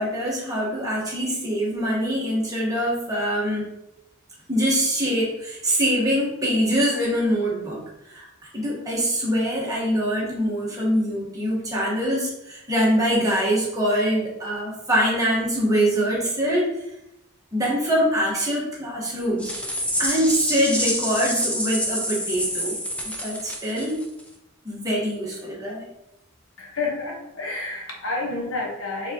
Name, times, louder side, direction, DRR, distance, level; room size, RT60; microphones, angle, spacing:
voice 1, 0.0-3.7 4.5-7.8 8.1-8.3 8.5-16.7 17.5-19.5 20.0-22.7 23.2-24.0 24.6-25.8, equal, 15° right, -5 dB, 1.3 m, -24 dB
sound 1, 19.4-24.2, equal, 5° left, 0.5 m, -27 dB
voice 2, 26.6-29.1, left 3 dB, 75° left, 0 dB, 1.1 m, -29 dB
4.5 x 3.6 x 2.9 m, 0.84 s
head